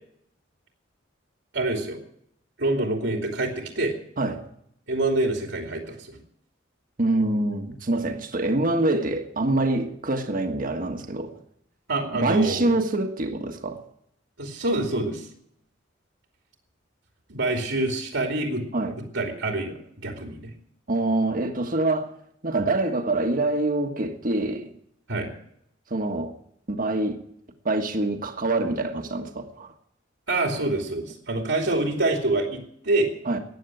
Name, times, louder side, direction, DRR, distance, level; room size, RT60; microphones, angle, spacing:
voice 1, 1.5-2.0 2.6-3.9 4.9-6.2 11.9-12.8 14.4-15.3 17.3-18.6 19.1-20.5 25.1-25.3 30.3-33.1, right 2 dB, 75° right, 2.7 m, -26 dB
voice 2, 7.0-11.3 12.1-13.8 18.7-18.9 20.9-22.1 22.4-24.7 25.9-26.3 26.7-27.2 27.6-29.7 33.2-33.4, right 2 dB, 45° right, 1.5 m, -25 dB
15.0 x 9.7 x 9.1 m
head